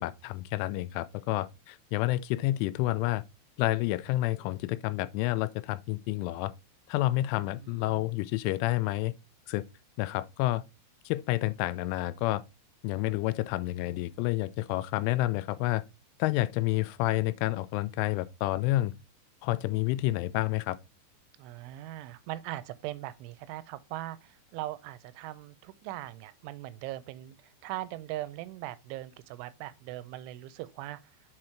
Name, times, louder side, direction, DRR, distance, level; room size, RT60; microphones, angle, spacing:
voice 1, 0.0-3.2 3.6-6.5 6.9-9.1 9.5-9.6 10.0-10.6 11.1-12.4 12.8-15.8 16.2-18.9 19.4-20.8, left 17 dB, 90° left, 3.0 m, -29 dB
voice 2, 7.6-8.1 21.4-27.4 27.6-31.0, right 15 dB, 85° right, 3.0 m, -40 dB
7.8 x 3.8 x 4.4 m
omnidirectional pair, 5.5 m